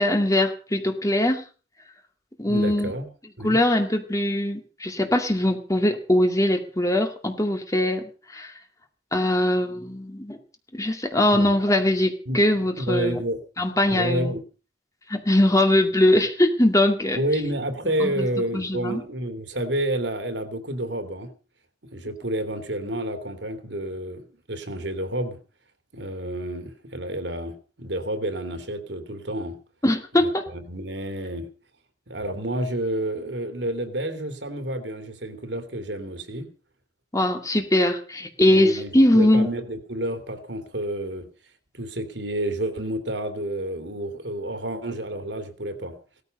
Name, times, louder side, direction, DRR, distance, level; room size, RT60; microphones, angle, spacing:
voice 1, 0.0-1.4 2.4-2.9 3.4-8.5 9.1-10.4 10.7-13.2 13.6-14.3 15.1-17.2 18.0-18.3 18.5-19.0 29.8-30.4 37.1-39.5, left 1 dB, 20° left, 5 dB, 2.2 m, -21 dB
voice 2, 2.4-3.1 3.4-3.6 11.3-11.6 12.3-13.4 13.9-14.4 17.2-21.3 21.9-25.4 25.9-29.6 30.2-31.5 32.1-36.5 38.5-41.3 41.7-46.0, right 1 dB, 80° right, 8 dB, 2.9 m, -30 dB
17.5 x 14.0 x 5.4 m, 0.37 s
head